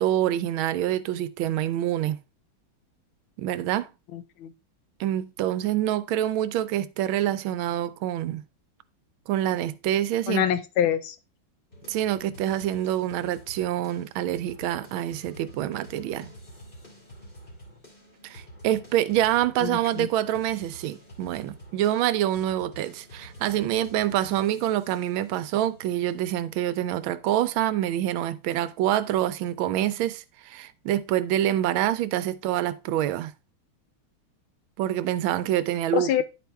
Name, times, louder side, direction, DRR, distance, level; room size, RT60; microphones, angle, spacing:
voice 1, 0.0-2.2 3.4-3.9 5.0-8.4 9.3-10.4 11.9-16.3 18.2-33.3 34.8-36.2, right 12 dB, 80° right, 1.4 m, -26 dB
voice 2, 4.1-4.5 10.3-11.2 19.6-20.1 35.9-36.2, left 10 dB, 80° left, 1.6 m, -26 dB
sound 1, 11.7-27.4, equal, 25° left, 2.7 m, -48 dB
10.5 x 4.2 x 3.4 m
omnidirectional pair, 2.2 m